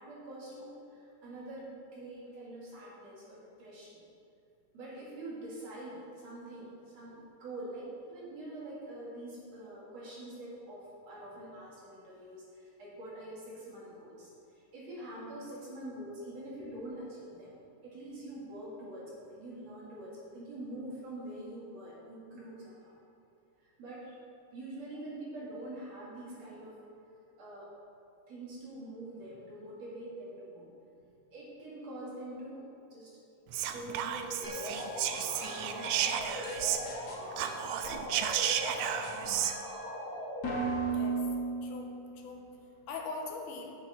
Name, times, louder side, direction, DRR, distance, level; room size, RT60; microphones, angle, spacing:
voice 1, 0.0-4.0 4.7-17.6 17.8-22.9 23.6-24.2 24.5-26.8 27.4-27.7 28.3-30.7 31.0-33.1 33.5-38.2 39.2-39.3, right 1 dB, 60° right, -7 dB, 3.2 m, -45 dB
Whispering, 33.5-37.1 37.3-39.6, right 10 dB, 90° right, 1.5 m, -33 dB
sound 1, 34.4-42.2, right 2 dB, 70° left, 0.8 m, -37 dB
voice 2, 39.1-39.6 40.9-41.4 41.6-43.7, left 3 dB, 85° left, 2 dB, 2.4 m, -43 dB
8.6 x 8.5 x 4.2 m, 2.6 s
omnidirectional pair, 3.6 m